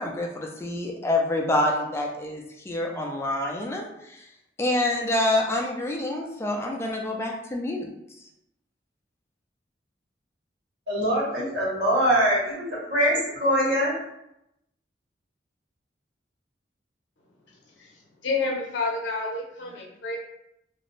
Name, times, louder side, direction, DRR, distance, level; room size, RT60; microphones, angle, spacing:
voice 1, 0.0-4.3 4.6-7.9, left 1 dB, 15° left, 0 dB, 0.4 m, -27 dB
voice 2, 10.9-13.9, equal, 65° right, -7 dB, 1.3 m, -23 dB
voice 3, 18.2-20.2, left 3 dB, 85° left, -1 dB, 0.7 m, -29 dB
2.5 x 2.0 x 3.0 m, 0.81 s
head